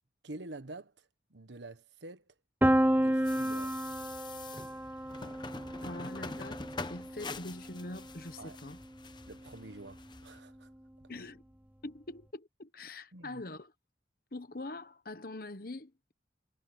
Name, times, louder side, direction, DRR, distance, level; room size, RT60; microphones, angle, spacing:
voice 1, 0.2-0.9 1.3-2.2 2.9-3.8 8.4-8.6 9.2-10.7 11.0-11.1 13.1-13.4, right 2 dB, 80° right, 1.4 m, -47 dB
Piano, 2.6-8.4, right 1 dB, 10° right, 0.6 m, -31 dB
sound 1, 3.2-10.4, left 3 dB, 25° left, 1.0 m, -45 dB
voice 2, 5.8-8.8 11.1-11.4 11.8-13.7 14.3-16.1, left 2 dB, 50° left, 1.2 m, -44 dB
head